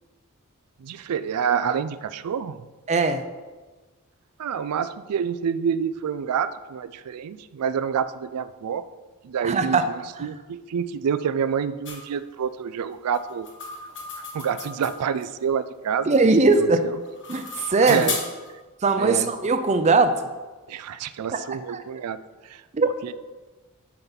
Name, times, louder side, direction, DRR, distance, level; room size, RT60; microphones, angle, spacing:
voice 1, 0.8-2.6 4.4-8.8 9.2-13.5 14.2-16.2 16.5-17.0 17.8-18.2 19.0-19.3 20.7-22.2 22.4-22.6 23.0-23.1, right 7 dB, 90° right, 13 dB, 0.4 m, -28 dB
voice 2, 2.9-3.2 9.4-9.8 10.2-10.3 16.1-16.8 17.3-18.1 18.8-20.1 21.3-21.4 21.7-21.8 22.7-22.9, right 3 dB, 30° right, 8 dB, 0.5 m, -20 dB
sound 1, 11.8-12.0 13.1-15.2 16.9-18.5, left 4 dB, 55° left, 1.3 m, -34 dB
8.9 x 5.7 x 4.0 m, 1.3 s
head